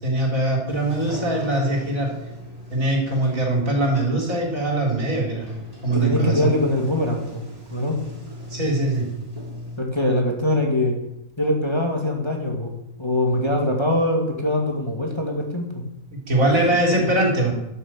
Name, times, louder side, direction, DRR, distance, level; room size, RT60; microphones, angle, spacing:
voice 1, 0.0-2.1 2.7-5.5 5.8-6.5 8.5-9.0 16.1-17.5, right 1 dB, 70° right, -1 dB, 4.2 m, -22 dB
Sliding door, 0.7-9.8, left 1 dB, 25° right, 3.7 m, -38 dB
voice 2, 5.9-7.4 7.7-8.0 9.8-10.9 11.4-12.7 13.0-15.8 16.5-17.1, left 1 dB, 20° left, 0 dB, 2.3 m, -23 dB
11.0 x 10.5 x 7.5 m, 0.87 s
omnidirectional pair, 1.5 m